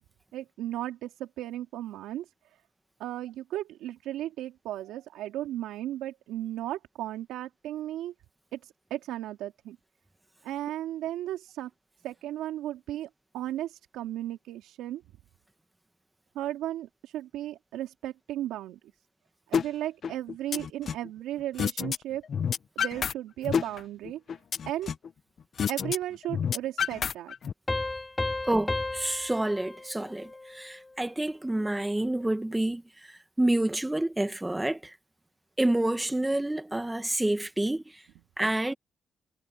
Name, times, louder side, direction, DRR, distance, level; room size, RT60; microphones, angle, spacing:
voice 1, 0.3-2.3 3.0-8.1 8.5-9.8 10.4-11.7 12.0-15.0 16.3-18.8 19.5-22.2 22.7-24.2 24.6-24.9 25.7-27.3, right 13 dB, 90° right, 3.3 m, -35 dB
sound 1, 19.5-19.7 20.0-21.1 21.6-22.0 22.2-23.1 23.4-25.1 25.6-26.0 26.2-27.5, left 7 dB, 55° left, 0.9 m, -29 dB
Piano, 27.7-31.0, left 2 dB, 15° left, 2.8 m, -34 dB
voice 2, 28.5-34.9 35.6-38.0 38.4-38.7, right 1 dB, 10° right, 1.7 m, -28 dB
cardioid pair, 90°, 0 cm